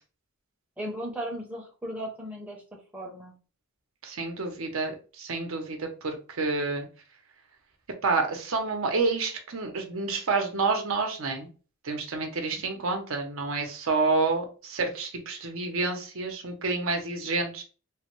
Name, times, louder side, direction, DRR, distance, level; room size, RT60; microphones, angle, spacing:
voice 1, 0.8-2.6 2.9-3.3 12.5-12.6, equal, 5° right, -2 dB, 0.7 m, -36 dB
voice 2, 4.0-6.9 8.0-11.5 11.8-17.6, right 3 dB, 65° right, 3 dB, 0.7 m, -29 dB
3.3 x 2.2 x 3.0 m, 0.36 s
head